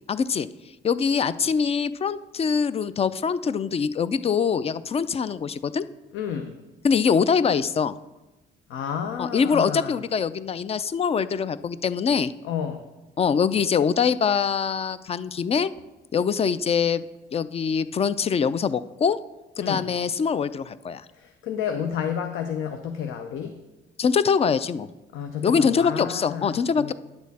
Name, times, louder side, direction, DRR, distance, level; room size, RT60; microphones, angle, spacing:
voice 1, 0.1-0.5 0.8-5.8 6.8-8.0 9.2-12.3 13.2-15.7 16.1-17.0 17.3-19.2 19.6-21.0 24.0-24.9 25.4-26.9, left 6 dB, 30° left, 16 dB, 0.3 m, -23 dB
voice 2, 6.1-6.5 8.7-10.0 12.4-12.8 19.6-19.8 21.1-23.6 25.1-26.9, left 8 dB, 85° left, 6 dB, 0.6 m, -31 dB
9.6 x 6.2 x 4.1 m, 1.0 s
cardioid pair, 90°, 20 cm